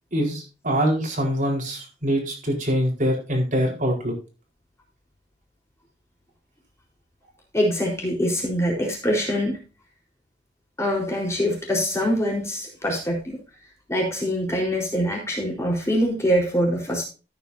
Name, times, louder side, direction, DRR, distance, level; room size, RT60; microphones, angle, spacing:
voice 1, 0.1-4.1, equal, 45° right, 0 dB, 4.4 m, -24 dB
voice 2, 7.5-9.6 10.8-13.4 13.9-17.0, equal, 15° left, -1 dB, 4.2 m, -24 dB
13.5 x 9.5 x 2.7 m, 0.33 s
head